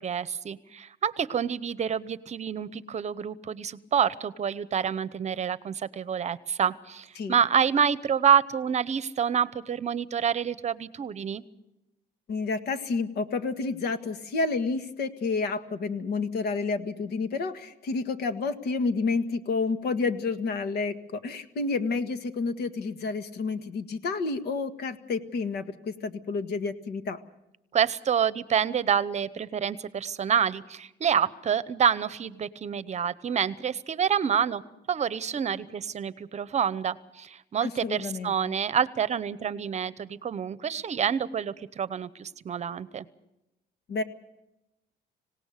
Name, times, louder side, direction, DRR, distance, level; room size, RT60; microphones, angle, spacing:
voice 1, 0.0-11.4 27.7-34.6 34.9-43.0, right 8 dB, 40° right, 17 dB, 0.9 m, -27 dB
voice 2, 12.3-27.2 37.6-38.5 43.9-44.0, left 4 dB, 65° left, 10 dB, 1.8 m, -30 dB
26.0 x 18.0 x 6.6 m, 0.90 s
cardioid pair, 125°, 18 cm